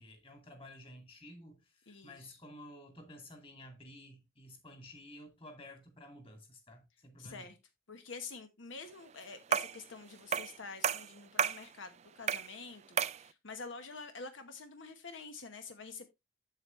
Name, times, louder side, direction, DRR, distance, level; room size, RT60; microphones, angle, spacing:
voice 1, 0.0-7.5, left 1 dB, 25° left, 2.3 m, -53 dB
voice 2, 1.9-2.4 7.2-7.6 7.9-16.1, left 4 dB, 75° left, 1.1 m, -47 dB
sound 1, 9.5-9.8 10.3-10.6 10.8-11.6 12.3-12.5 13.0-13.2, right 7 dB, 35° right, 0.3 m, -32 dB
8.0 x 7.6 x 3.1 m
head